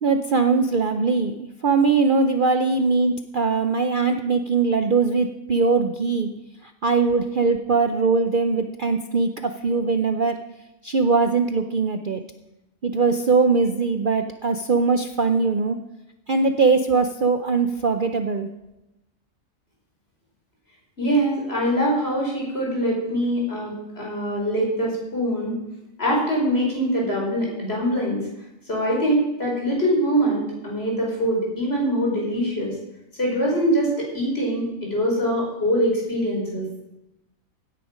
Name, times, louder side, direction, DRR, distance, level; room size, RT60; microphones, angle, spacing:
voice 1, 0.0-6.3 6.6-10.4 10.8-12.2 12.8-15.8 16.3-18.5, right 4 dB, 50° right, 7 dB, 0.7 m, -21 dB
voice 2, 21.0-25.6 26.0-28.3 28.7-32.7 33.2-36.7, equal, 45° left, -2 dB, 5.0 m, -23 dB
17.0 x 10.0 x 5.1 m, 0.93 s
omnidirectional pair, 1.4 m